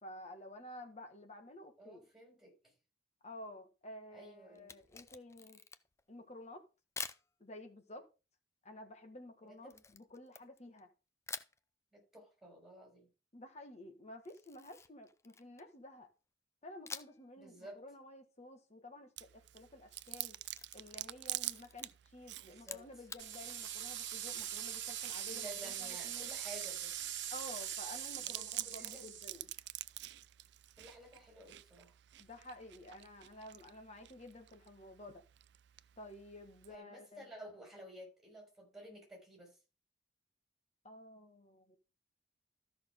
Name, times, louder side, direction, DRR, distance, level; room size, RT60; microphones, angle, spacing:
voice 1, 0.0-2.1 3.2-5.6 6.1-6.6 7.4-8.1 8.6-10.9 13.3-16.1 16.6-20.4 20.7-26.3 27.3-29.5 32.2-35.2 36.0-37.3 40.8-41.8, left 1 dB, 35° left, 1.8 m, -52 dB
voice 2, 1.8-2.5 4.1-4.8 9.4-9.8 11.9-13.1 17.4-17.8 22.4-22.8 25.3-26.9 28.3-29.0 30.8-31.9 36.7-39.5, equal, ahead, 6.3 m, -53 dB
Camera, 4.6-6.0 7.0-7.3 9.7-10.9 11.3-11.6 14.2-15.8 16.9-17.3 17.6-17.7 19.7-21.1 21.4-21.9 22.6-23.3, left 5 dB, 15° left, 0.4 m, -48 dB
Chewing mastication, 19.2-36.8, right 16 dB, 65° right, 0.4 m, -49 dB
sound 1, 23.2-29.3, right 11 dB, 80° right, 1.2 m, -42 dB
13.5 x 6.1 x 3.7 m
head